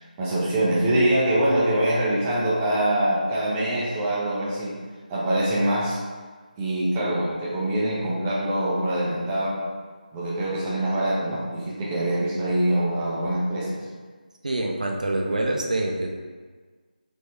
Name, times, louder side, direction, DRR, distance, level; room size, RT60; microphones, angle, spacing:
voice 1, 0.0-4.7 5.1-6.0 6.6-9.6 10.1-13.8, right 1 dB, 10° right, -7 dB, 0.6 m, -24 dB
voice 2, 14.4-16.1, right 2 dB, 55° right, 1 dB, 0.7 m, -25 dB
3.5 x 3.1 x 4.3 m, 1.5 s
figure-of-eight pair, 160°, 5 cm